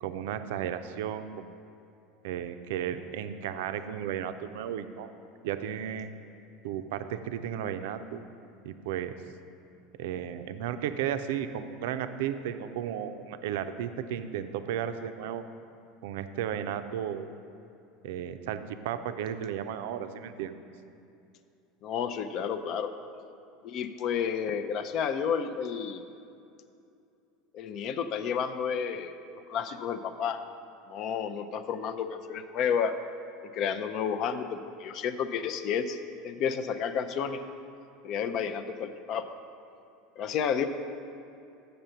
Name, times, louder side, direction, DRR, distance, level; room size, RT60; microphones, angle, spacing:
voice 1, 0.0-1.3 2.2-5.1 5.4-6.1 6.6-8.2 8.6-9.2 10.0-15.4 16.0-17.3 18.0-20.5, right 9 dB, 70° right, 10 dB, 0.4 m, -34 dB
voice 2, 21.8-22.9 23.6-26.0 27.5-29.1 29.5-30.4 30.9-32.9 33.5-36.0 36.2-37.4 38.0-39.3 40.2-40.7, left 7 dB, 50° left, 10 dB, 0.5 m, -31 dB
7.6 x 6.7 x 5.6 m, 2.6 s
hypercardioid pair, 80°, 0 cm